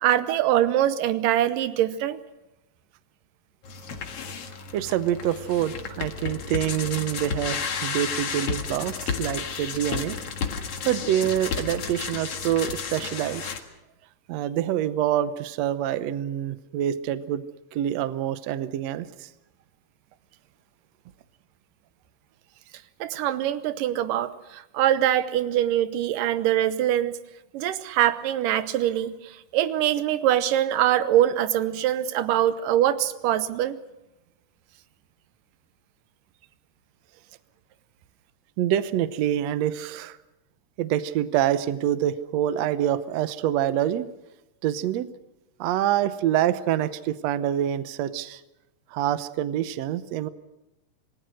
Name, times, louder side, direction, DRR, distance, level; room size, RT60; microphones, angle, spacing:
voice 1, 0.0-2.2 23.0-27.1 27.5-33.8, right 12 dB, 85° right, 13 dB, 2.5 m, -23 dB
sound 1, 3.6-13.6, left 6 dB, 50° left, 2.5 m, -32 dB
voice 2, 4.7-10.2 10.9-13.5 14.3-17.4 17.7-19.3 38.6-40.2 40.8-44.0 44.6-45.1 45.6-48.4 48.9-50.3, right 11 dB, 70° right, 13 dB, 1.8 m, -26 dB
26.5 x 19.0 x 6.4 m, 0.95 s
omnidirectional pair, 3.8 m